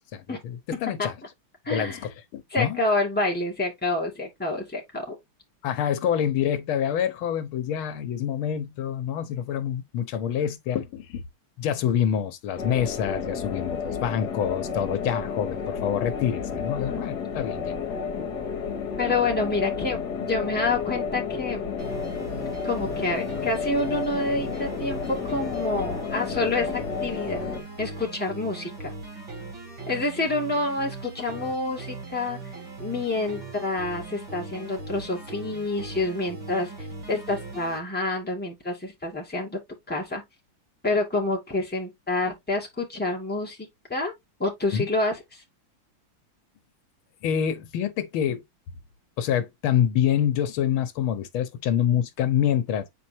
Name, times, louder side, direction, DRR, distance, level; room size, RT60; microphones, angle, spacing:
voice 1, 0.1-1.1 1.7-2.8 5.6-11.2 11.6-17.7 18.2-18.3 44.7-44.9 47.2-48.4 49.2-52.9, left 9 dB, 85° left, 1.7 m, -26 dB
voice 2, 1.7-2.1 2.5-5.2 16.9-17.1 19.0-21.7 22.6-27.4 27.8-28.9 29.9-32.4 32.8-39.6 39.9-40.2 40.8-44.1 44.4-45.4, left 2 dB, 5° left, 2.0 m, -28 dB
sound 1, 12.6-27.6, left 6 dB, 55° left, 1.8 m, -31 dB
sound 2, 21.8-37.8, right 3 dB, 70° right, 3.5 m, -39 dB
7.9 x 4.4 x 2.8 m
omnidirectional pair, 2.2 m